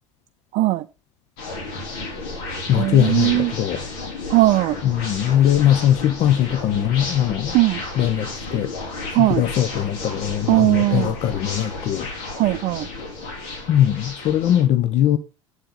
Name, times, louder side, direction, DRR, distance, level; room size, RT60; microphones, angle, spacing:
voice 1, 0.5-0.9 2.8-3.5 4.3-4.8 7.5-7.8 9.1-9.4 10.5-11.1 12.4-12.9, right 19 dB, 45° right, 0.5 m, -18 dB
sound 1, 1.4-14.6, left 3 dB, 60° left, 3.1 m, -32 dB
voice 2, 2.7-3.8 4.8-7.6 8.0-8.7 9.1-12.1 13.7-15.2, left 11 dB, 45° left, 0.8 m, -20 dB
8.1 x 7.8 x 4.1 m
figure-of-eight pair, 70°, 16 cm